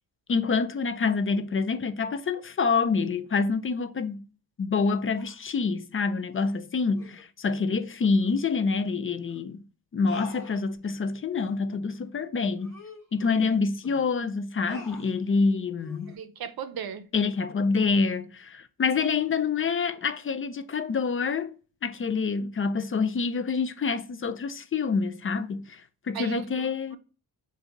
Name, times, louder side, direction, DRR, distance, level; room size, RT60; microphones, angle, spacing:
voice 1, 0.3-4.2 4.6-9.6 9.9-12.8 13.1-16.1 17.1-25.8 26.1-27.0, left 4 dB, 35° left, 0.4 m, -27 dB
sound 1, 5.1-5.5 6.3-6.6 7.0-7.2 8.2-8.4 8.8-8.9 9.3-9.4 10.1-11.0 11.4-11.6 12.0-12.1 12.6-14.0 14.6-15.2 15.8-16.2, left 4 dB, 5° left, 2.3 m, -47 dB
voice 2, 16.1-17.1 26.1-27.0, right 8 dB, 60° right, 0.7 m, -37 dB
5.0 x 2.7 x 3.8 m
wide cardioid pair, 135°, 40 cm